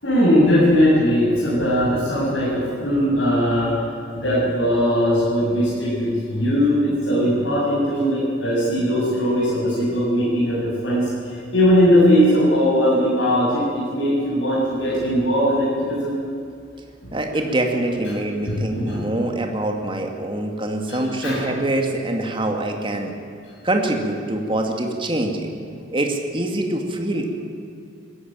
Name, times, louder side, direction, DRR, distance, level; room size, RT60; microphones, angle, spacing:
voice 1, 0.0-3.7 4.1-16.2 17.0-17.1 18.5-19.2 20.9-21.5, equal, 80° left, -8 dB, 7.3 m, -19 dB
voice 2, 17.1-23.1 23.6-25.5 25.9-27.4, right 1 dB, 25° right, 2 dB, 2.2 m, -24 dB
21.0 x 15.0 x 9.0 m, 2.4 s
head